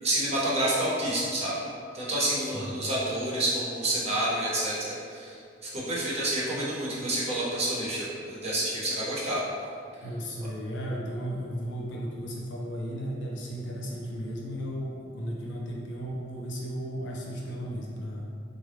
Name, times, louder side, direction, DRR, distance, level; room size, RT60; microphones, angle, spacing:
voice 1, 0.0-1.5 1.9-9.4, right 1 dB, 35° right, -6 dB, 0.8 m, -29 dB
voice 2, 2.4-2.7 10.0-18.3, equal, 80° left, -3 dB, 0.7 m, -35 dB
3.9 x 2.2 x 3.3 m, 2.3 s
head